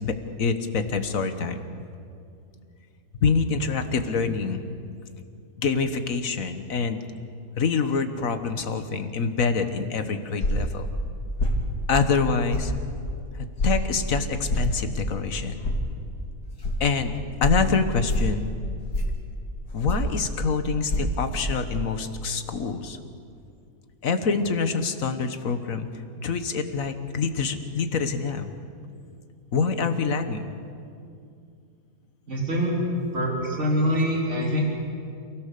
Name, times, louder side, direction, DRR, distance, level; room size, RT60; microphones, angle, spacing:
voice 1, 0.0-1.6 3.2-4.6 5.6-7.0 7.6-10.9 11.9-12.7 13.6-15.6 16.8-17.1 17.4-18.5 19.7-23.0 24.0-25.9 26.2-28.5 29.5-30.5, left 5 dB, 55° left, 8 dB, 1.6 m, -26 dB
sound 1, 10.4-10.7 11.4-11.6 12.5-12.7 13.6-13.8 14.5-14.7 15.6-15.8 16.6-16.7 17.4-17.6 18.1-18.3 18.9-19.2 19.9-20.1 20.9-21.0, left 1 dB, 75° left, 3.3 m, -24 dB
voice 2, 32.3-32.8 33.1-34.6, equal, 45° right, -2 dB, 3.9 m, -24 dB
28.5 x 17.0 x 6.8 m, 2.4 s
omnidirectional pair, 1.7 m